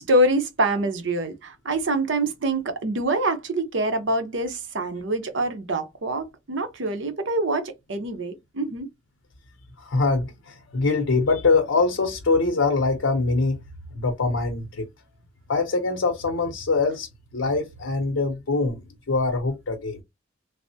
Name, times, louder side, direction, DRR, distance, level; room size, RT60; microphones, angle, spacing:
voice 1, 0.0-8.9, right 1 dB, 70° right, 0.7 m, -25 dB
voice 2, 9.8-13.6 13.9-14.9 15.5-20.0, left 3 dB, 90° left, 0.6 m, -23 dB
3.3 x 2.0 x 2.7 m
head